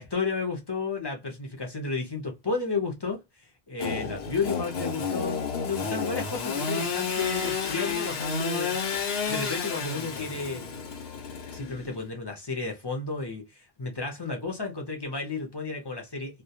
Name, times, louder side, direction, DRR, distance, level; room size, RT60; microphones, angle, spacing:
voice 1, 0.0-8.7 9.1-10.7 11.5-16.4, left 4 dB, 30° left, 0.5 m, -32 dB
Engine / Sawing, 3.8-12.0, left 5 dB, 80° left, 0.9 m, -31 dB
2.2 x 2.2 x 2.7 m
omnidirectional pair, 1.0 m